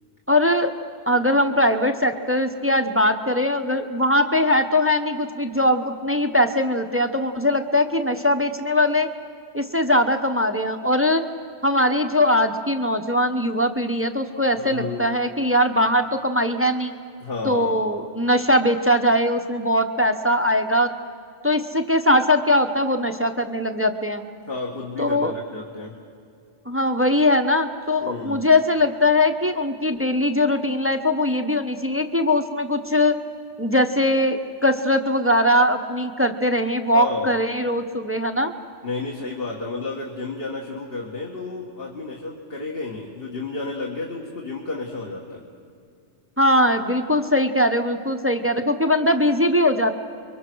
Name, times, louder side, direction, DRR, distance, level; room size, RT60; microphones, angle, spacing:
voice 1, 0.3-0.7 1.1-9.1 9.5-11.2 11.6-16.9 17.4-20.9 21.4-24.2 25.0-25.3 26.7-33.2 33.6-38.5 46.4-50.0, left 1 dB, 15° right, 7 dB, 0.8 m, -21 dB
voice 2, 14.5-15.1 17.2-17.8 24.5-25.9 28.0-28.5 36.9-37.3 38.8-45.4, left 3 dB, 55° left, -2 dB, 2.1 m, -31 dB
30.0 x 23.0 x 6.2 m, 2.3 s
omnidirectional pair, 1.2 m